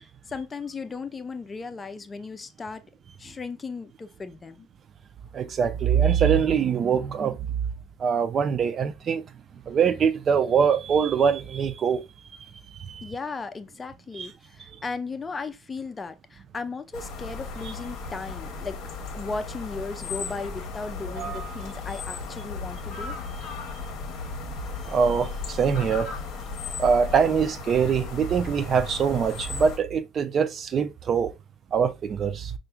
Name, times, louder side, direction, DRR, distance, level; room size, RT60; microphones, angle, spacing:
voice 1, 0.3-2.8 3.2-4.7 13.0-18.8 19.1-23.2, left 4 dB, 25° left, 0.5 m, -36 dB
voice 2, 5.3-7.4 8.0-9.2 9.7-12.0 12.9-13.1 14.2-14.3 17.6-17.7 21.2-21.5 24.9-26.1 26.8-31.3 31.7-32.5, right 7 dB, 40° right, 0.5 m, -23 dB
sound 1, 16.9-29.8, left 4 dB, 55° left, 0.9 m, -36 dB
5.4 x 2.5 x 2.2 m
hypercardioid pair, 65°, 0 cm